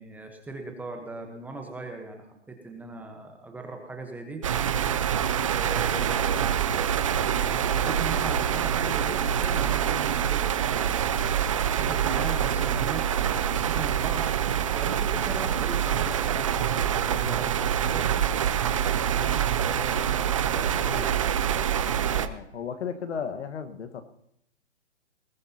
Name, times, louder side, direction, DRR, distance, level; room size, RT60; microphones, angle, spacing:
voice 1, 0.0-4.4 5.5-7.0 7.4-10.4 11.8-14.3 14.7-18.0 19.1-21.1, right 3 dB, 5° right, 3 dB, 1.1 m, -39 dB
sound 1, 4.4-22.3, right 9 dB, 30° right, 0.4 m, -25 dB
voice 2, 22.1-24.0, left 7 dB, 70° left, 8 dB, 1.5 m, -35 dB
20.5 x 15.0 x 2.9 m, 0.77 s
hypercardioid pair, 150°, 36 cm